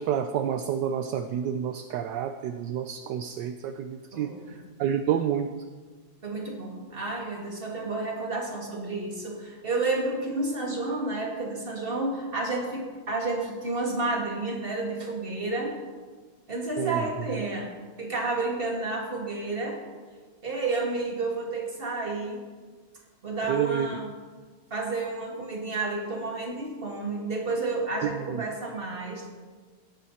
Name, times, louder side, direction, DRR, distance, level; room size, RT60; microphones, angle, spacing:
voice 1, 0.0-5.5 16.8-17.0 23.5-23.9 28.1-28.4, right 9 dB, 70° right, 8 dB, 1.1 m, -29 dB
voice 2, 4.1-4.5 6.2-15.8 16.5-17.7 18.0-19.8 20.4-22.4 23.2-24.1 24.7-29.3, right 3 dB, 25° right, -1 dB, 2.8 m, -31 dB
17.0 x 14.0 x 4.2 m, 1.4 s
omnidirectional pair, 2.4 m